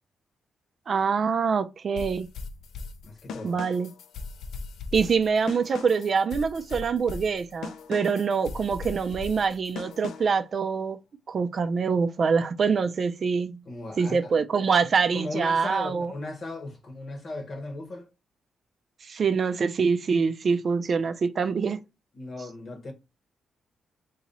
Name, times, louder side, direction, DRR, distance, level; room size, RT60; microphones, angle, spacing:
voice 1, 0.9-2.3 3.4-3.9 4.9-11.0 11.3-13.6 14.0-16.1 19.1-21.8, right 5 dB, 55° right, 0.4 m, -25 dB
sound 1, 2.0-10.4, left 4 dB, 80° left, 0.3 m, -39 dB
voice 2, 3.0-3.6 13.7-14.3 15.1-18.1 22.1-22.9, left 2 dB, 50° left, 1.1 m, -36 dB
2.9 x 2.7 x 4.0 m
cardioid pair, 70°, 0 cm